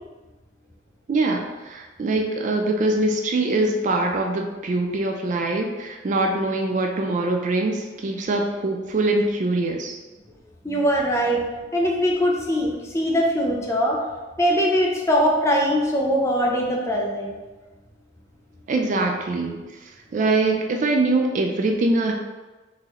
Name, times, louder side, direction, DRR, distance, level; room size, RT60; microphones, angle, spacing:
voice 1, 1.1-10.0 18.7-22.1, right 2 dB, 40° right, 2 dB, 0.3 m, -23 dB
voice 2, 10.6-11.4 11.7-14.0 14.4-17.4, equal, 15° left, -1 dB, 0.5 m, -21 dB
3.7 x 3.0 x 3.0 m, 1.2 s
head